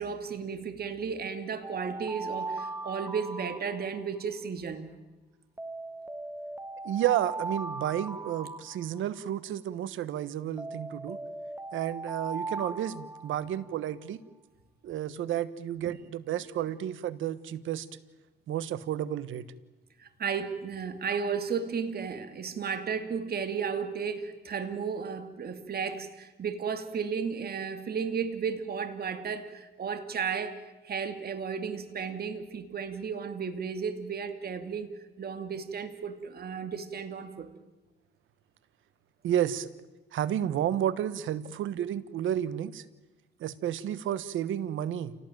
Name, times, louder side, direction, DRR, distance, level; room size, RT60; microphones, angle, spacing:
voice 1, 0.0-4.9 15.8-16.0 20.0-37.5, right 6 dB, 50° right, 9 dB, 2.5 m, -34 dB
Alarm, 1.6-4.2 5.6-9.2 10.6-13.8, right 3 dB, 10° right, 1.4 m, -39 dB
voice 2, 6.8-11.2 11.7-14.2 14.8-17.9 18.5-19.4 39.2-39.7 40.1-42.8 43.4-45.1, right 11 dB, 80° right, 16 dB, 1.3 m, -31 dB
28.5 x 18.0 x 9.2 m, 1.1 s
cardioid pair, 90°, 20 cm